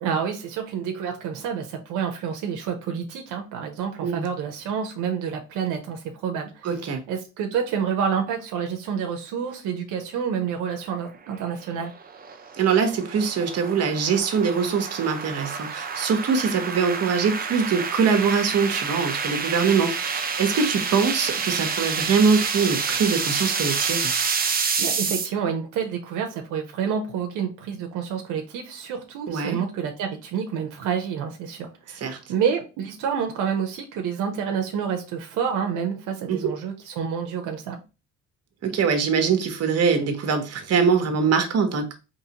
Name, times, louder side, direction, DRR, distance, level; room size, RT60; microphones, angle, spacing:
voice 1, 0.0-6.7 7.1-11.9 24.8-37.8, right 7 dB, 85° right, 0.7 m, -28 dB
voice 2, 6.6-7.0 12.6-24.1 29.3-29.6 32.0-32.2 36.3-36.5 38.6-41.9, right 5 dB, 55° right, 0.9 m, -23 dB
sound 1, 11.3-25.3, right 5 dB, 30° right, 0.6 m, -28 dB
3.8 x 3.0 x 2.8 m
cardioid pair, 90°, 30 cm